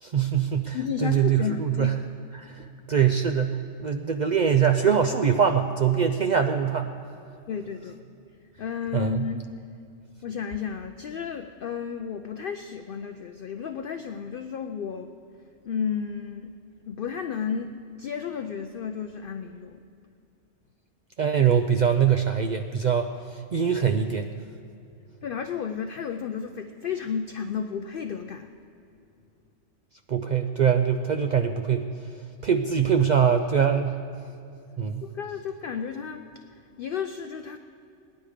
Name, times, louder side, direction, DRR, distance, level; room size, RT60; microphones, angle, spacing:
voice 1, 0.0-2.0 2.3-6.9 8.9-9.3 21.2-24.3 30.1-31.9 32.4-34.0 34.8-35.0, right 7 dB, 70° right, 6 dB, 0.4 m, -23 dB
voice 2, 0.7-2.0 2.6-2.7 7.5-8.0 8.6-9.5 10.2-15.1 15.7-16.5 16.9-19.8 25.2-28.5 35.0-36.2 36.8-37.6, left 7 dB, 60° left, 7 dB, 0.6 m, -32 dB
17.5 x 10.5 x 4.9 m, 2.5 s
omnidirectional pair, 1.3 m